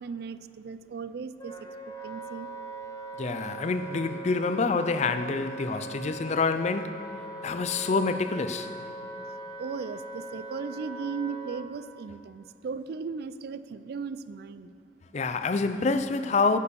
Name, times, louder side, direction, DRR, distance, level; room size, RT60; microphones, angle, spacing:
voice 1, 0.0-2.5 9.3-14.7, right 5 dB, 60° right, 0.3 m, -37 dB
Wind instrument woodwind instrument, 1.4-11.7, right 2 dB, 20° left, 1.0 m, -40 dB
voice 2, 3.2-7.0 7.4-8.7 15.1-16.6, left 4 dB, 40° left, 0.4 m, -27 dB
9.4 x 6.8 x 7.0 m
head